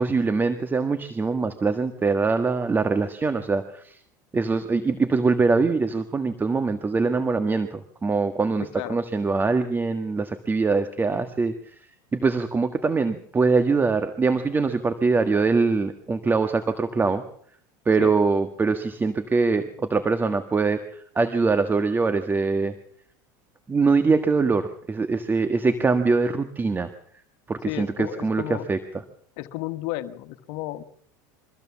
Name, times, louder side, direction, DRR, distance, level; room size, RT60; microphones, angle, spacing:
voice 1, 0.0-4.0 4.3-11.7 12.1-17.2 17.8-22.7 23.7-26.9 27.5-28.8, right 4 dB, 20° right, 9 dB, 1.5 m, -23 dB
voice 2, 27.6-28.7 29.4-30.8, left 15 dB, 65° left, 10 dB, 1.5 m, -33 dB
24.0 x 15.0 x 7.2 m, 0.62 s
supercardioid pair, 105°, 10 cm